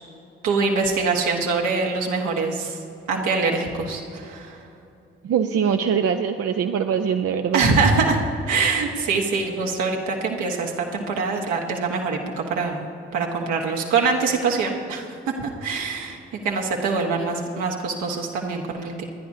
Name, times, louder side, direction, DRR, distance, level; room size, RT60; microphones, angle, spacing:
voice 1, 0.4-2.8 3.1-4.6 7.5-12.9 13.1-19.0, right 4 dB, 75° right, 0 dB, 1.5 m, -24 dB
voice 2, 5.2-7.7, right 7 dB, 50° right, 6 dB, 0.7 m, -22 dB
27.0 x 10.5 x 2.8 m, 2.8 s
hypercardioid pair, 40°, 30 cm